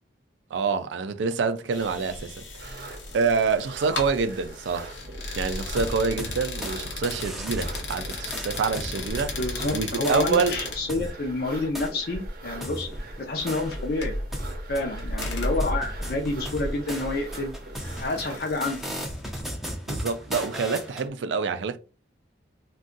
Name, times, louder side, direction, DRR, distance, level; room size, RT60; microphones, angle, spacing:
voice 1, 0.5-4.9 5.4-9.4 9.7-10.6 19.9-21.8, right 5 dB, 80° right, 0.4 m, -27 dB
sound 1, 1.7-19.4, left 1 dB, 85° left, 0.8 m, -35 dB
sound 2, 2.6-18.4, right 3 dB, 55° right, 0.7 m, -44 dB
sound 3, 5.8-6.8 7.0-11.1 11.7-11.9 12.6-14.0 14.3-21.1, equal, ahead, 0.5 m, -37 dB
voice 2, 9.2-12.9 13.2-14.1 14.7-17.5 18.0-18.9, left 2 dB, 55° left, 0.5 m, -29 dB
2.6 x 2.3 x 3.7 m
head